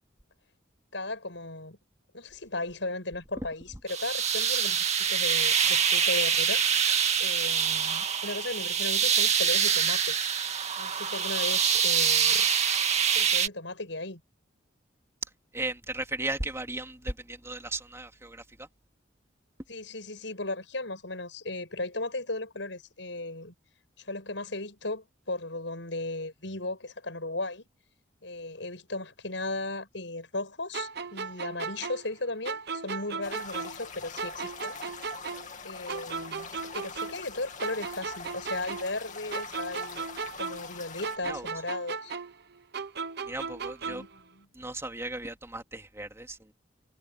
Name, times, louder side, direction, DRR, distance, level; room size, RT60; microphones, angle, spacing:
voice 1, 0.9-1.8 2.1-6.8 7.2-10.2 10.8-12.4 13.1-14.2 19.7-23.5 24.0-27.7 28.2-34.8 35.6-40.0 40.4-42.2 43.9-44.5, left 2 dB, 75° left, 7.6 m, -36 dB
sound 1, 3.9-13.5, right 7 dB, 35° right, 2.2 m, -25 dB
voice 2, 15.5-18.7 41.2-41.5 43.2-44.0 44.5-46.4, right 2 dB, 15° right, 3.1 m, -36 dB
sound 2, 30.7-33.9 34.2-37.3 37.6-40.8 41.0-44.2, right 5 dB, 60° right, 0.9 m, -36 dB
sound 3, 33.2-41.2, left 5 dB, 40° left, 2.5 m, -43 dB
head